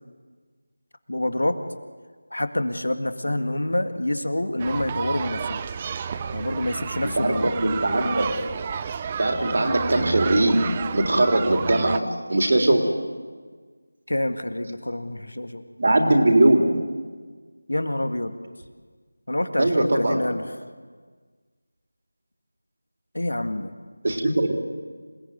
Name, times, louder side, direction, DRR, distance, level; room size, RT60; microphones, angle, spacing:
voice 1, 1.1-1.6 2.3-5.6 6.3-7.6 14.1-15.6 17.7-18.3 19.3-20.6 23.1-23.7, left 1 dB, 75° left, 9 dB, 2.0 m, -27 dB
sound 1, 4.6-12.0, right 6 dB, 20° right, 0.7 m, -31 dB
voice 2, 7.2-8.3 9.2-10.6 10.9-12.0 12.3-12.8 15.8-16.8 19.6-20.2 24.0-24.5, right 1 dB, 50° right, 3 dB, 3.8 m, -20 dB
27.0 x 19.0 x 9.6 m, 1.5 s
figure-of-eight pair, 165°, 0 cm